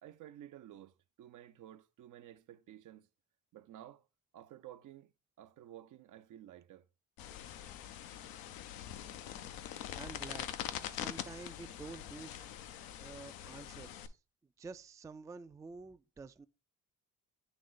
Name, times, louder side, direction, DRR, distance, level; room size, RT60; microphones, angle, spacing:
voice 1, 0.0-3.1 3.5-4.1 4.3-5.1 5.4-6.9 8.9-9.3, right 12 dB, 60° right, 0.5 m, -53 dB
sound 1, 7.2-14.1, left 11 dB, 80° left, 0.6 m, -44 dB
voice 2, 9.7-10.5 10.9-12.5 13.0-14.2 14.6-16.5, right 4 dB, 10° right, 0.3 m, -49 dB
8.9 x 3.1 x 3.8 m
supercardioid pair, 65°, 35 cm